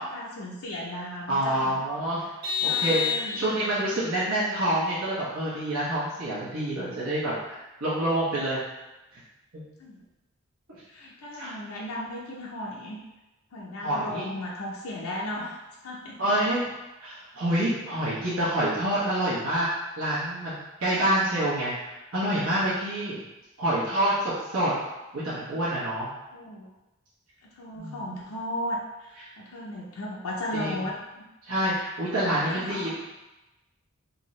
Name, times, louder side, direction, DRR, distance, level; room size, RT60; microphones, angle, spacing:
voice 1, 0.0-1.7 2.2-2.3 2.6-3.7 9.8-10.0 10.9-13.0 13.5-16.2 26.3-26.7 27.4-31.3 32.2-32.9, left 1 dB, 80° left, -3 dB, 0.5 m, -36 dB
voice 2, 1.3-2.2 2.6-8.6 11.4-11.6 13.8-14.2 16.2-16.7 17.0-19.7 20.0-23.2 23.6-24.7 25.1-26.1 27.7-28.3 30.5-30.8 31.5-32.9, right 1 dB, 80° right, -10 dB, 1.0 m, -27 dB
Vehicle horn car horn honking, 2.4-3.8, left 7 dB, 45° right, 0.8 m, -28 dB
3.5 x 2.7 x 3.1 m, 1.0 s
head